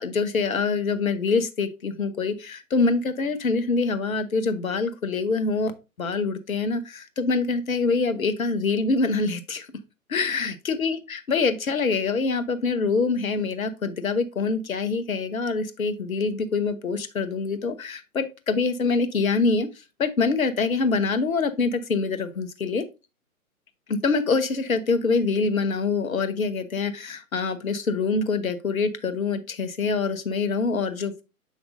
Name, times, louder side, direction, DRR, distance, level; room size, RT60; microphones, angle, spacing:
voice 1, 0.0-5.7 6.0-9.7 10.1-22.8 23.9-31.2, left 4 dB, 70° left, 10 dB, 1.1 m, -25 dB
7.3 x 5.8 x 2.6 m, 0.28 s
figure-of-eight pair, 120°, 43 cm